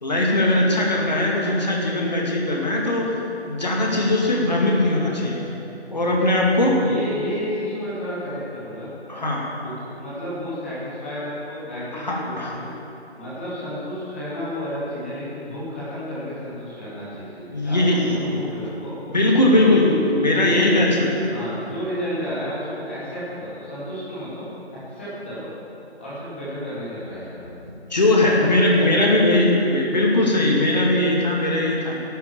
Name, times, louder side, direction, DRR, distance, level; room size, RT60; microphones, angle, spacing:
voice 1, 0.0-3.2 3.5-5.5 5.9-6.8 9.1-9.5 11.9-12.5 17.5-18.1 19.1-20.9 27.9-31.9, left 1 dB, 40° left, -2 dB, 2.2 m, -20 dB
voice 2, 6.8-8.9 9.6-12.7 13.2-18.9 19.4-19.9 20.3-24.5 24.9-25.4 26.0-27.5 28.2-28.3 28.7-29.2, equal, 10° left, -11 dB, 2.5 m, -31 dB
11.5 x 9.3 x 7.4 m, 2.8 s
figure-of-eight pair, 170°, 33 cm